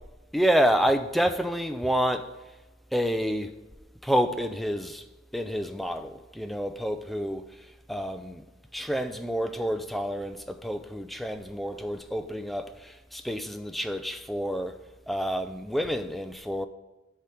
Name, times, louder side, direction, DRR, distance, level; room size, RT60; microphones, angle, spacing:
voice 1, 0.3-2.3 2.9-3.5 4.0-5.1 5.3-7.5 7.9-8.4 8.7-14.7 15.1-16.7, equal, ahead, 0.4 m, -28 dB
8.4 x 4.4 x 6.3 m
head